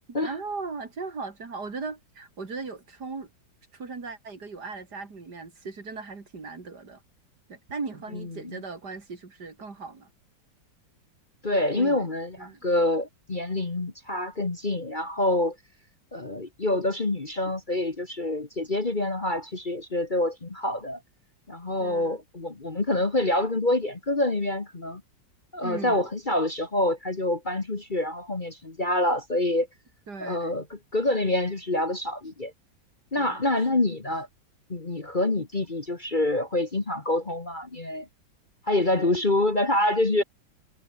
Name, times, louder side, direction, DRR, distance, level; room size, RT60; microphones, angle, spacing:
voice 1, 0.2-3.3 3.7-7.0 7.5-10.1 11.7-12.1 12.4-12.6 21.8-22.2 25.6-26.0 30.1-30.6 33.1-33.5 33.7-33.8, right 4 dB, 55° right, 3.6 m, -38 dB
voice 2, 8.1-8.6 11.4-15.5 16.1-21.0 21.5-25.0 25.5-29.7 30.2-32.5 33.1-34.3 34.7-38.1 38.6-40.2, left 1 dB, 25° left, 1.8 m, -26 dB
omnidirectional pair, 2.1 m